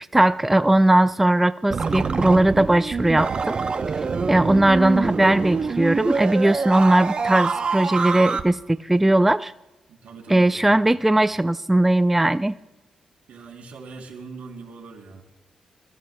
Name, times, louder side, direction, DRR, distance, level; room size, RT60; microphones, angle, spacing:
voice 1, 0.1-3.6 4.0-9.5 10.3-12.5, right 1 dB, 10° right, 12 dB, 0.3 m, -19 dB
sound 1, 1.7-8.4, right 5 dB, 45° right, 0.7 m, -25 dB
voice 2, 9.9-10.6 13.3-15.2, right 4 dB, 80° right, 0 dB, 3.1 m, -41 dB
24.5 x 14.5 x 2.2 m, 1.0 s
cardioid pair, 90°, 2 cm